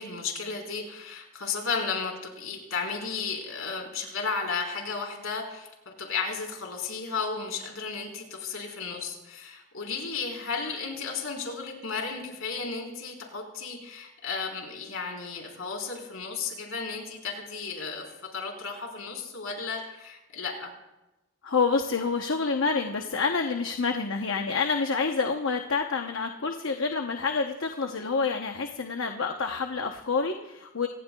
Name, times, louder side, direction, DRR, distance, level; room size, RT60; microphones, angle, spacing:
voice 1, 0.0-18.0 18.3-20.7, left 5 dB, 90° left, 0 dB, 4.2 m, -34 dB
voice 2, 21.4-30.9, left 4 dB, 75° left, 4 dB, 0.9 m, -28 dB
25.5 x 18.0 x 2.3 m, 0.98 s
head